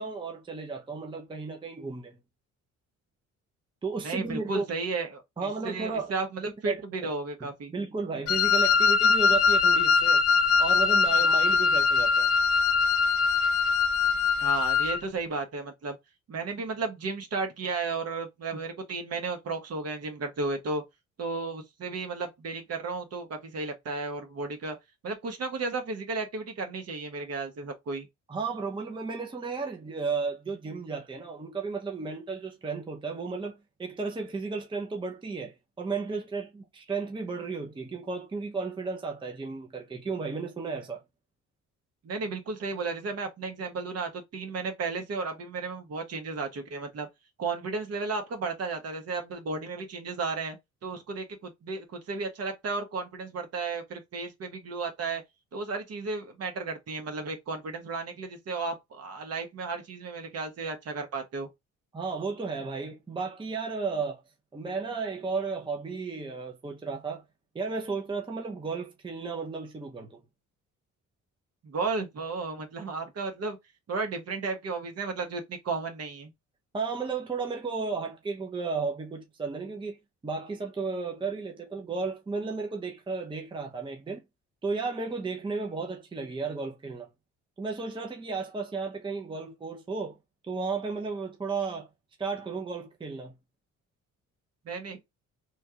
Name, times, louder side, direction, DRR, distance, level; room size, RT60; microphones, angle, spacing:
voice 1, 0.0-2.2 3.8-4.7 5.4-6.1 6.7-7.1 7.7-10.2 10.6-12.3 28.3-41.0 61.9-64.2 64.5-67.2 67.5-70.2 76.7-80.0 80.2-84.2 84.6-87.1 87.6-90.2 90.4-91.9 92.2-93.3, right 4 dB, 15° right, 0.6 m, -34 dB
voice 2, 4.0-7.7 14.4-16.0 16.3-20.8 21.2-24.8 25.0-28.1 42.0-47.1 47.4-50.6 50.8-55.2 55.5-61.5 71.6-73.6 73.9-76.3 94.6-95.0, right 3 dB, 55° right, 1.1 m, -34 dB
Wind instrument woodwind instrument, 8.3-15.0, left 5 dB, 55° left, 0.5 m, -22 dB
3.1 x 2.4 x 2.8 m
cardioid pair, 90°, 30 cm